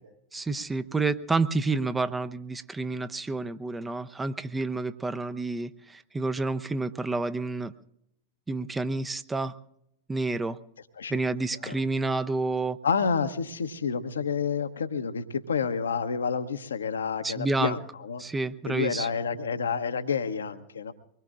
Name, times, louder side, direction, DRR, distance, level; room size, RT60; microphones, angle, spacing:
voice 1, 0.3-7.7 8.5-9.5 10.1-10.6 11.1-12.8 17.2-17.8 18.2-19.1, right 3 dB, 10° right, 12 dB, 0.6 m, -29 dB
voice 2, 12.8-18.2 18.6-20.9, left 6 dB, 70° left, 11 dB, 0.9 m, -29 dB
24.0 x 21.0 x 2.5 m, 0.78 s
figure-of-eight pair, 90°, 0 cm